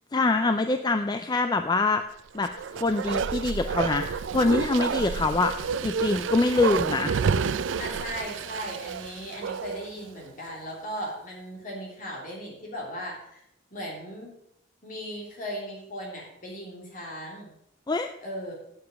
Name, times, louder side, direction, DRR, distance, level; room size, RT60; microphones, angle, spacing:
voice 1, 0.1-2.0 2.3-2.5 2.8-5.5 5.8-7.1 17.9-18.1, left 3 dB, 20° left, 7 dB, 0.4 m, -24 dB
Bark, 2.4-9.9 10.3-10.4, right 6 dB, 85° right, 0.4 m, -30 dB
voice 2, 7.8-13.4 13.7-14.3 14.8-17.6 18.2-18.5, equal, 45° left, -2 dB, 3.0 m, -37 dB
8.8 x 7.0 x 6.3 m, 0.75 s
head